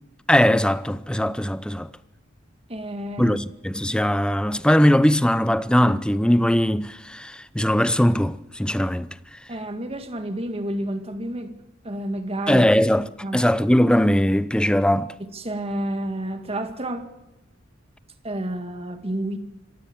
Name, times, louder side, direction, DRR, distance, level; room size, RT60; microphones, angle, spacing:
voice 1, 0.3-1.9 3.2-9.1 12.5-13.1 13.3-15.1, equal, 5° left, 0.6 m, -20 dB
voice 2, 2.7-3.4 9.5-11.6 11.8-12.7 13.2-13.4 15.3-17.1 18.2-19.4, right 1 dB, 30° right, 2.1 m, -30 dB
26.0 x 16.0 x 7.2 m
head